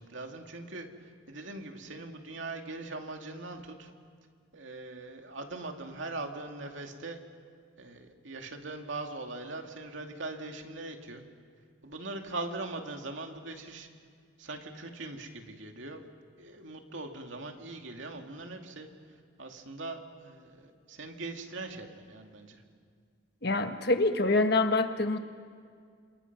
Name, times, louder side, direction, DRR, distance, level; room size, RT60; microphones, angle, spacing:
voice 1, 0.0-3.9 4.5-7.2 7.8-11.2 11.8-13.9 14.4-16.1 16.4-18.9 19.4-22.6, right 2 dB, 75° right, 3 dB, 2.4 m, -41 dB
voice 2, 23.4-25.2, left 2 dB, 55° left, 7 dB, 1.4 m, -26 dB
28.0 x 27.5 x 6.1 m, 2.1 s
head